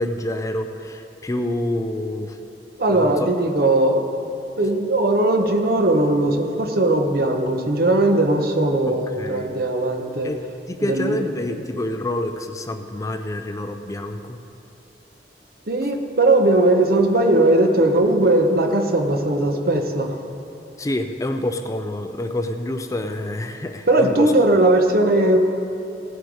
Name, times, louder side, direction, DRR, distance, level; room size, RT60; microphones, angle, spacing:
voice 1, 0.0-2.4 2.9-3.3 8.9-9.5 10.2-10.4 10.7-14.4 20.8-24.3, left 1 dB, 20° left, 7 dB, 0.5 m, -27 dB
voice 2, 2.8-4.0 4.6-10.3 10.8-11.2 15.7-20.2 23.9-25.4, right 2 dB, 55° right, 4 dB, 1.1 m, -18 dB
17.0 x 8.0 x 4.8 m, 2.8 s
head